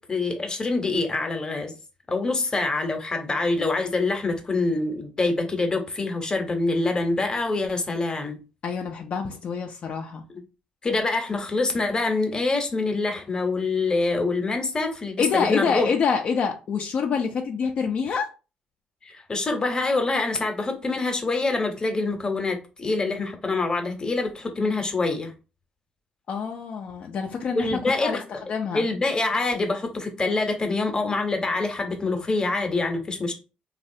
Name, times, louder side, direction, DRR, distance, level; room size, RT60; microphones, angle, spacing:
voice 1, 0.1-1.7 2.1-8.4 10.8-15.9 19.1-25.3 27.5-28.2 28.7-33.3, left 3 dB, 30° left, 0.9 m, -25 dB
voice 2, 8.6-10.2 15.2-18.3 26.3-28.9, left 6 dB, 55° left, 0.5 m, -26 dB
3.2 x 2.4 x 2.7 m
cardioid pair, 80°, 3 cm